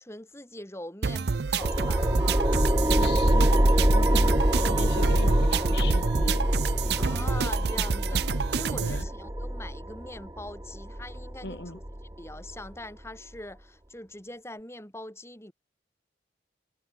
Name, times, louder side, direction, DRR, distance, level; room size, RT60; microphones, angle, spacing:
voice 1, 0.0-2.5 4.2-4.3 7.0-11.8 12.2-15.5, left 1 dB, 15° left, 6.4 m, -42 dB
sound 1, 1.0-9.0, right 5 dB, 60° right, 0.5 m, -29 dB
sound 2, 1.6-12.7, right 1 dB, 20° right, 1.8 m, -25 dB
voice 2, 2.9-4.3 4.7-6.4 8.8-9.1 11.4-11.8, left 2 dB, 65° left, 5.5 m, -38 dB
head